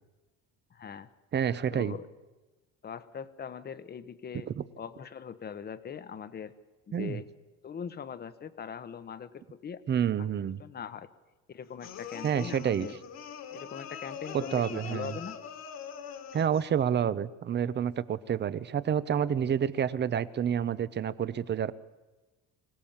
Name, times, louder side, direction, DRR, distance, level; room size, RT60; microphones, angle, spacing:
voice 1, 0.7-1.1 1.7-2.1 2.8-4.5 4.8-6.5 6.9-7.3 7.6-9.8 10.6-11.1 11.5-13.0 13.5-15.4, left 7 dB, 30° left, 13 dB, 1.1 m, -41 dB
voice 2, 1.3-2.0 6.9-7.2 9.9-10.6 12.2-12.9 14.3-15.1 16.3-21.7, right 8 dB, 35° right, 16 dB, 0.8 m, -29 dB
sound 1, 11.8-16.7, left 7 dB, 55° left, 2.1 m, -43 dB
25.5 x 17.0 x 7.3 m, 1.1 s
cardioid pair, 135°, 31 cm